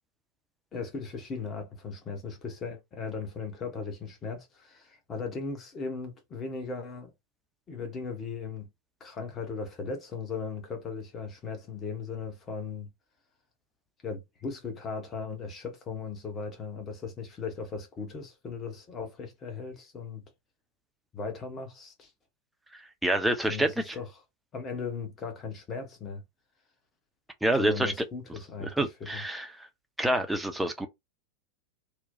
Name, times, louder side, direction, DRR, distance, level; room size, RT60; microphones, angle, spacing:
voice 1, 0.7-7.1 7.7-8.7 9.0-12.9 14.0-20.2 21.1-22.1 23.4-24.1 24.5-26.2 27.6-29.2, left 5 dB, 25° left, 0.9 m, -37 dB
voice 2, 23.0-23.9 27.4-27.9 28.6-29.7 30.0-30.9, right 1 dB, 5° right, 0.6 m, -27 dB
3.0 x 2.1 x 2.6 m
figure-of-eight pair, 90°, 0 cm